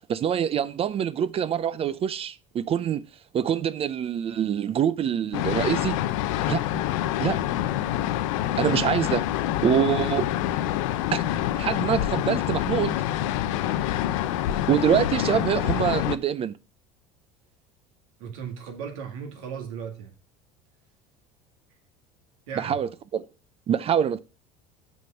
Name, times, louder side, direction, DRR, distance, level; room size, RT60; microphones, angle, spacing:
voice 1, 0.1-3.0 3.3-6.0 6.5-6.8 7.2-7.4 8.6-9.2 9.6-10.3 11.1-11.2 11.5-12.9 14.7-16.5 22.6-23.2 23.7-24.2, right 9 dB, 35° right, 0.5 m, -25 dB
sound 1, 5.3-16.2, left 12 dB, 80° left, 0.6 m, -26 dB
voice 2, 18.2-20.1 22.5-22.8, right 7 dB, 80° right, 2.2 m, -36 dB
6.2 x 5.4 x 5.7 m
supercardioid pair, 100°, 16 cm